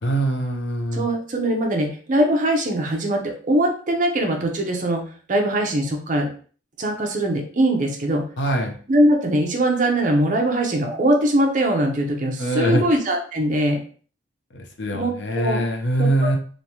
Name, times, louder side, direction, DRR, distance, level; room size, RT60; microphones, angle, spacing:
voice 1, 0.0-1.1 8.4-8.8 12.4-12.8 14.5-16.4, right 1 dB, 70° left, 4 dB, 0.6 m, -23 dB
voice 2, 0.9-5.0 5.3-6.3 6.8-8.2 8.9-13.8 14.9-15.6 16.0-16.4, right 1 dB, 45° right, 2 dB, 0.6 m, -21 dB
3.1 x 2.2 x 2.7 m, 0.43 s
head